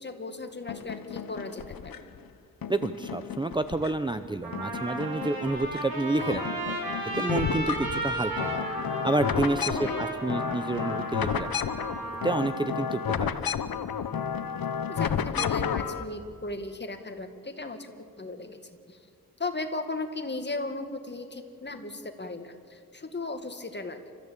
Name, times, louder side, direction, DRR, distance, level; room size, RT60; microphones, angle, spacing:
voice 1, 0.0-2.1 9.8-10.0 14.9-18.6 18.9-19.0 19.4-24.1, left 2 dB, 30° left, 7 dB, 1.9 m, -36 dB
sound 1, 0.7-2.2 2.6-4.2 4.5-5.8 6.1-16.0, left 7 dB, 80° left, 1.0 m, -32 dB
voice 2, 2.7-6.4 7.1-8.6 9.0-11.5 12.2-13.5, right 2 dB, 15° right, 10 dB, 0.6 m, -29 dB
Trumpet, 3.7-3.8 4.4-12.4, right 2 dB, 90° right, 5.1 m, -34 dB
30.0 x 14.0 x 8.5 m, 2.3 s
wide cardioid pair, 110°, 35 cm